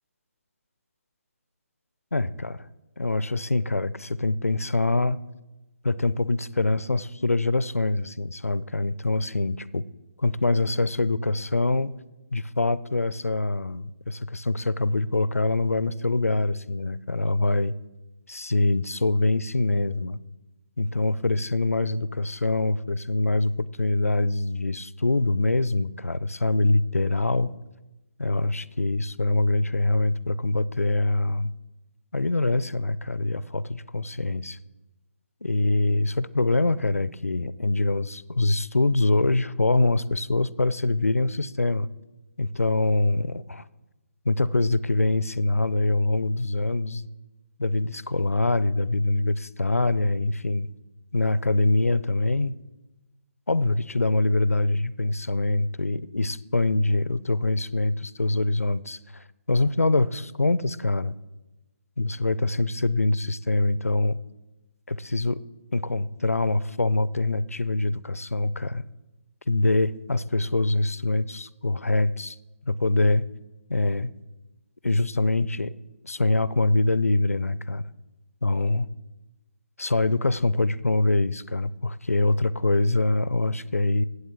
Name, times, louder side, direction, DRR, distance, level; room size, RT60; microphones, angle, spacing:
voice 1, 2.1-2.7 3.0-5.2 5.8-9.9 10.2-11.9 12.3-17.7 18.3-20.2 20.8-27.5 28.2-31.5 32.1-34.6 35.4-41.9 42.4-43.6 44.3-47.1 47.6-50.7 51.1-52.6 53.5-61.1 62.0-64.2 64.9-65.4 65.7-68.8 69.5-72.4 72.6-73.3 73.7-74.1 74.8-75.7 76.0-77.8 78.4-78.9 79.8-84.0, left 2 dB, 85° left, 19 dB, 0.4 m, -24 dB
16.0 x 8.0 x 3.4 m, 1.1 s
figure-of-eight pair, 140°, 8 cm